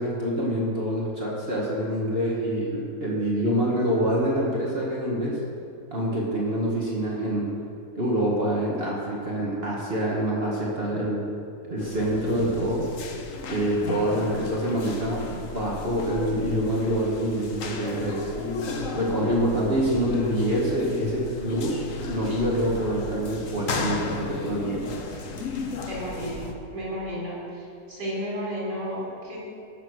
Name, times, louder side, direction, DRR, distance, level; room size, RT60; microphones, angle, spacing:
voice 1, 0.0-5.4 5.9-7.6 7.9-11.3 11.7-12.9 13.5-18.3 18.9-24.9, right 1 dB, 35° right, -4 dB, 2.0 m, -26 dB
sound 1, 11.8-26.5, left 3 dB, 55° left, 1.3 m, -34 dB
voice 2, 25.9-27.6 27.9-29.4, equal, 75° right, -7 dB, 4.6 m, -32 dB
16.5 x 7.1 x 6.4 m, 2.5 s
omnidirectional pair, 1.8 m